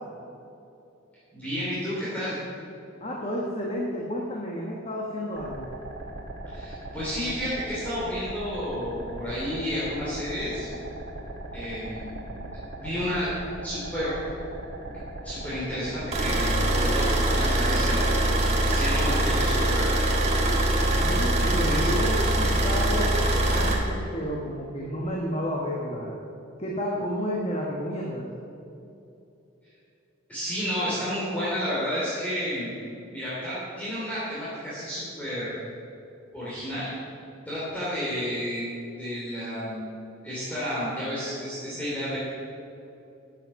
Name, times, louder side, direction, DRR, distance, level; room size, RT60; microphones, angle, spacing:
voice 1, 1.3-2.4 6.5-10.7 11.5-12.2 12.7-13.3 13.6-14.2 15.2-18.0 18.6-19.9 21.6-21.9 30.3-32.7 33.1-35.5 36.3-36.9 37.5-38.6 39.0-39.9 40.2-42.2, equal, 5° left, -10 dB, 2.9 m, -31 dB
voice 2, 3.0-5.7 20.9-26.2 26.6-28.3, equal, 30° left, -2 dB, 1.2 m, -31 dB
sound 1, 5.4-16.9, right 2 dB, 65° right, 1.9 m, -39 dB
sound 2, 16.1-23.7, right 1 dB, 30° right, 1.7 m, -23 dB
11.0 x 8.9 x 6.4 m, 2.8 s
head